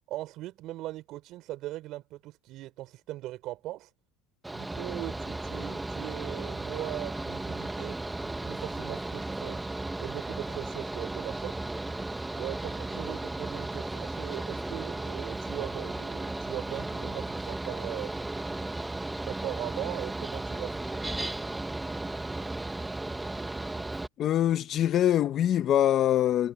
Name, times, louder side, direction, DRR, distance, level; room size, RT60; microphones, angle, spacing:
voice 1, 0.1-3.9 4.5-9.6 10.0-11.6 12.3-18.1 19.3-20.9, right 16 dB, 60° right, 6.3 m, -39 dB
Mechanical fan, 4.4-24.1, right 2 dB, 10° right, 1.4 m, -35 dB
voice 2, 24.2-26.5, left 11 dB, 45° left, 1.2 m, -24 dB
supercardioid pair, 125°, 0 cm